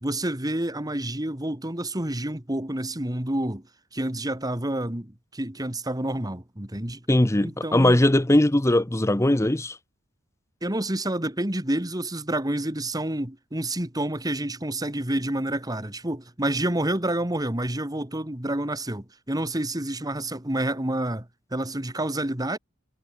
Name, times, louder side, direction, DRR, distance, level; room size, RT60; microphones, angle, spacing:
voice 1, 0.0-3.6 3.9-7.0 7.4-8.0 10.6-22.6, right 1 dB, 20° right, 2.2 m, -29 dB
voice 2, 7.1-9.8, left 1 dB, 15° left, 0.8 m, -20 dB
head